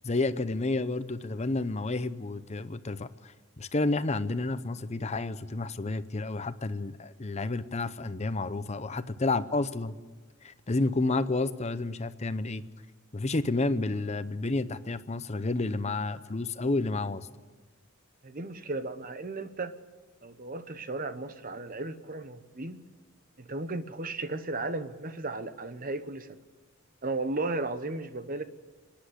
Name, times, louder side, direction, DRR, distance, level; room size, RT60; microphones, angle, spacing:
voice 1, 0.0-10.0 10.4-12.6 13.1-17.3, left 2 dB, 30° left, 13 dB, 0.7 m, -30 dB
voice 2, 18.2-19.7 20.2-22.8 23.4-26.4 27.0-28.4, right 2 dB, 40° right, 11 dB, 1.0 m, -35 dB
25.5 x 10.5 x 9.9 m, 1.3 s
head